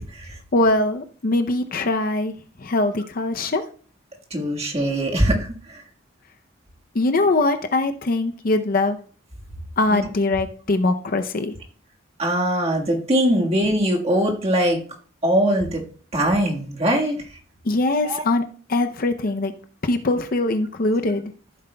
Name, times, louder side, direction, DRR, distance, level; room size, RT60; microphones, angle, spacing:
voice 1, 0.0-0.4 4.3-5.8 9.9-10.1 12.2-14.8 15.2-15.8 16.1-17.2 18.0-18.2, right 1 dB, 30° right, 0 dB, 1.6 m, -21 dB
voice 2, 0.5-2.3 2.6-3.6 6.9-9.0 9.8-11.5 17.6-18.4 18.7-19.5 19.8-21.3, left 2 dB, 45° left, 7 dB, 0.6 m, -22 dB
14.0 x 7.9 x 2.2 m, 0.41 s
head